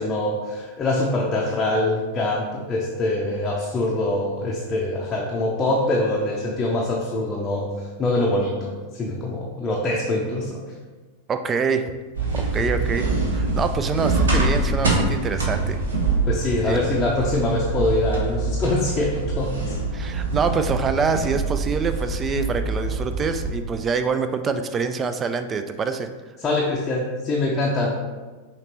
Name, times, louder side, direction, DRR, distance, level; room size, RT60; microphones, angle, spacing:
voice 1, 0.0-10.6 12.6-12.7 16.3-19.7 26.4-27.9, left 2 dB, 20° left, -3 dB, 0.6 m, -24 dB
voice 2, 11.3-11.9 12.3-15.8 16.7-16.8 19.9-26.1, right 5 dB, 20° right, 9 dB, 0.3 m, -25 dB
sound 1, 12.1-23.5, right 3 dB, 70° right, 0.9 m, -25 dB
5.8 x 2.9 x 2.9 m, 1.3 s
figure-of-eight pair, 90°, 0 cm